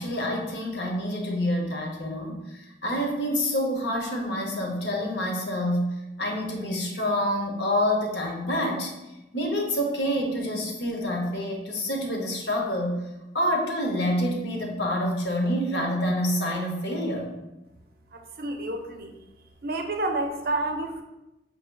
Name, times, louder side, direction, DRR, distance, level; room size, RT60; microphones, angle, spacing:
voice 1, 0.0-8.9 9.3-13.0 13.3-17.3, equal, 75° left, 1 dB, 0.7 m, -27 dB
voice 2, 18.4-19.1 19.6-21.0, right 2 dB, 55° right, 4 dB, 0.5 m, -29 dB
5.7 x 2.7 x 2.2 m, 0.96 s
head